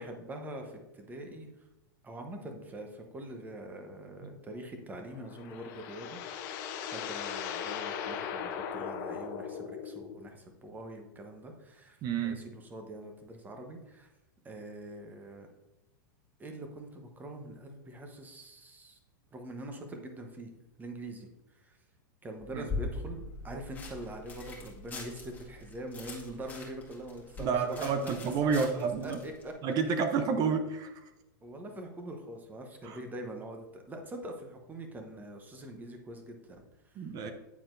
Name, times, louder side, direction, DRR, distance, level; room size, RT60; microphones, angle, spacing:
voice 1, 0.0-1.5 2.0-6.5 6.9-12.0 12.2-14.1 14.4-15.5 16.4-19.0 19.3-20.5 20.8-21.3 21.5-21.7 22.2-28.1 28.5-29.9 31.4-37.3, right 1 dB, 15° right, 4 dB, 1.0 m, -44 dB
sound 1, 5.1-10.3, left 8 dB, 55° left, 0.7 m, -38 dB
voice 2, 12.0-12.4 22.5-22.6 27.4-29.2 29.6-30.9 32.8-33.0 37.0-37.3, right 5 dB, 35° right, 7 dB, 0.7 m, -30 dB
sound 2, 22.4-29.5, left 3 dB, 15° left, 1.8 m, -42 dB
9.3 x 4.2 x 2.6 m, 0.99 s
hypercardioid pair, 120°, 11 cm